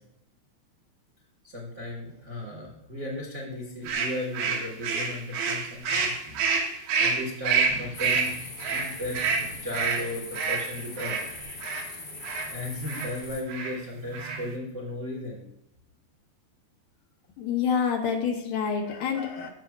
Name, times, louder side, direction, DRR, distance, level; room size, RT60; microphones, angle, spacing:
voice 1, 1.4-6.4 7.0-8.4 8.7-11.2 12.5-15.4, left 1 dB, 50° right, -5 dB, 0.8 m, -35 dB
sound 1, 3.9-11.9 12.2-12.5 12.9-13.1 13.5-13.8 14.1-14.6, right 5 dB, 80° right, 3.0 m, -28 dB
sound 2, 7.9-13.4, left 3 dB, 45° left, 1.6 m, -41 dB
voice 2, 17.4-19.5, left 6 dB, 70° left, 2 dB, 2.3 m, -27 dB
14.5 x 5.7 x 2.4 m, 0.78 s
omnidirectional pair, 4.2 m